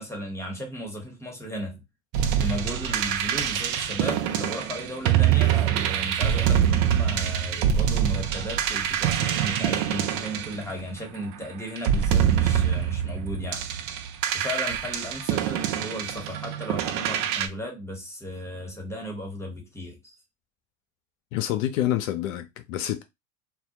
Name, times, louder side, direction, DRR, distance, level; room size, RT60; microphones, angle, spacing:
voice 1, 0.0-1.8 2.4-13.6 14.3-20.2, equal, 5° left, 0.9 m, -35 dB
sound 1, 2.1-11.2 11.8-17.5, right 9 dB, 50° right, 0.5 m, -25 dB
voice 2, 21.3-23.0, left 12 dB, 70° left, 0.5 m, -27 dB
2.2 x 2.1 x 2.8 m
hypercardioid pair, 90°, 41 cm